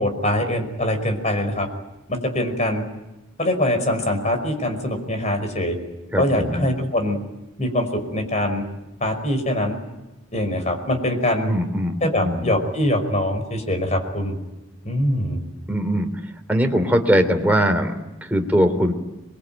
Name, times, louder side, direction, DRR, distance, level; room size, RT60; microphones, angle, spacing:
voice 1, 0.0-1.7 2.1-2.8 3.4-5.8 6.2-7.2 7.6-8.6 9.0-9.8 10.3-11.5 12.0-14.4 14.8-15.4, left 1 dB, 35° left, 6 dB, 5.4 m, -23 dB
voice 2, 6.1-6.7 11.5-12.5 15.7-16.1 16.5-17.9 18.2-18.9, equal, 10° right, 4 dB, 3.2 m, -21 dB
28.0 x 22.5 x 9.2 m, 0.97 s
head